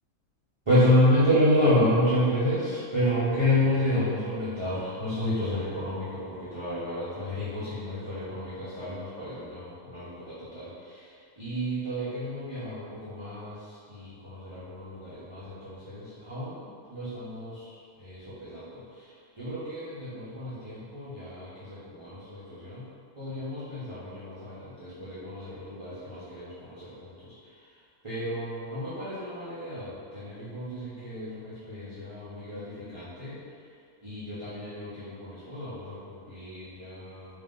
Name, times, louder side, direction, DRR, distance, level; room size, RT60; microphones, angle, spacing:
voice 1, 0.7-10.7 11.4-13.5 13.9-17.6 18.0-18.8 19.4-22.8 23.2-26.9 28.0-33.3 34.0-37.3, left 1 dB, 25° right, -14 dB, 0.8 m, -29 dB
3.5 x 2.9 x 3.6 m, 2.2 s
omnidirectional pair, 1.4 m